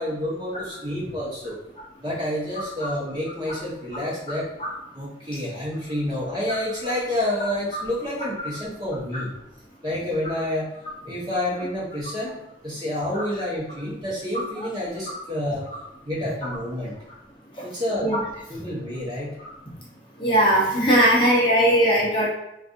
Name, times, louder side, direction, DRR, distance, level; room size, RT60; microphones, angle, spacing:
voice 1, 0.0-1.6 2.0-4.5 4.9-9.3 9.8-10.7 11.0-12.3 12.6-15.7 16.0-16.9 17.6-19.4, left 1 dB, 25° right, -7 dB, 1.0 m, -29 dB
voice 2, 20.2-22.3, equal, 30° left, -5 dB, 0.7 m, -19 dB
3.9 x 2.5 x 2.4 m, 0.86 s
head